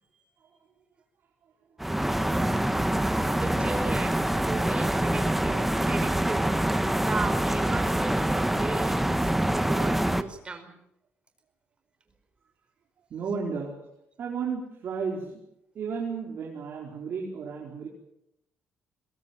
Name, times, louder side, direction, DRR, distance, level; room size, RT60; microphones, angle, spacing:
sound 1, 1.8-10.2, right 1 dB, 5° right, 1.2 m, -25 dB
voice 1, 3.4-6.5 7.0-10.7, right 4 dB, 25° right, 8 dB, 4.6 m, -36 dB
voice 2, 13.1-13.7 14.2-15.4 15.7-17.9, right 5 dB, 55° right, -1 dB, 4.5 m, -33 dB
22.5 x 22.0 x 7.7 m, 0.80 s
cardioid pair, 125°, 4 cm